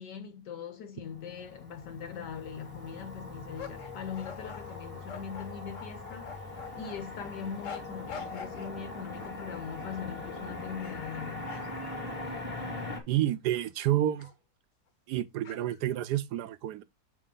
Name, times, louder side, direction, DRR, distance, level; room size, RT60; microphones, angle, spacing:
voice 1, 0.0-11.5, left 7 dB, 75° left, 1.4 m, -41 dB
Motor vehicle (road), 1.1-13.0, left 2 dB, 20° left, 1.3 m, -41 dB
sound 1, 3.6-7.0 7.6-8.8 9.2-10.0 10.7-11.1 11.5-13.0 13.5-13.7 14.2-14.3 15.4-15.9, left 7 dB, 50° left, 1.3 m, -46 dB
voice 2, 13.1-14.3 15.1-16.8, right 13 dB, 75° right, 1.1 m, -29 dB
6.4 x 4.7 x 3.7 m
omnidirectional pair, 1.9 m